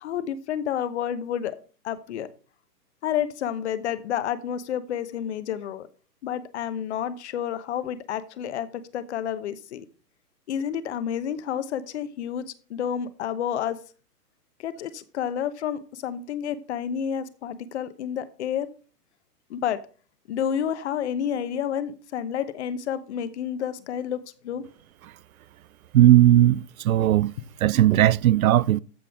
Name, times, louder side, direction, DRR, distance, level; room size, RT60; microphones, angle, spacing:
voice 1, 0.0-1.6 1.8-2.3 3.0-5.9 6.2-9.8 10.5-12.4 12.7-13.8 14.6-18.7 19.5-19.8 20.3-24.6, left 9 dB, 45° left, 1.0 m, -30 dB
voice 2, 25.9-27.3 27.6-28.8, right 13 dB, 60° right, 0.5 m, -17 dB
14.0 x 5.6 x 3.6 m
hypercardioid pair, 155°, 49 cm